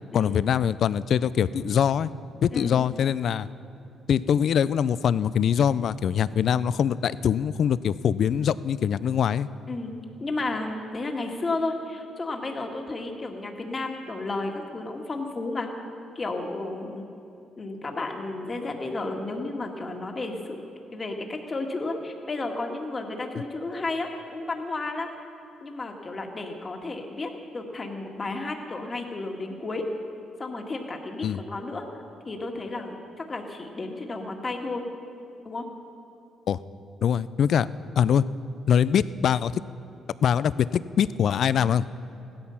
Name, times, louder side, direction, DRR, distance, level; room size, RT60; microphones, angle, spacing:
voice 1, 0.1-2.1 2.4-3.5 4.1-9.5 31.2-31.4 36.5-36.6 37.0-37.7 38.0-38.2 38.7-39.5 40.2-41.9, left 8 dB, 65° left, 17 dB, 0.4 m, -23 dB
voice 2, 10.2-15.7 16.2-17.0 17.6-20.6 20.9-25.1 25.6-29.8 30.4-31.9 32.3-34.8 35.5-35.7, left 2 dB, 30° left, 3 dB, 1.8 m, -32 dB
16.0 x 12.5 x 5.7 m, 2.7 s
cardioid pair, 90°, 0 cm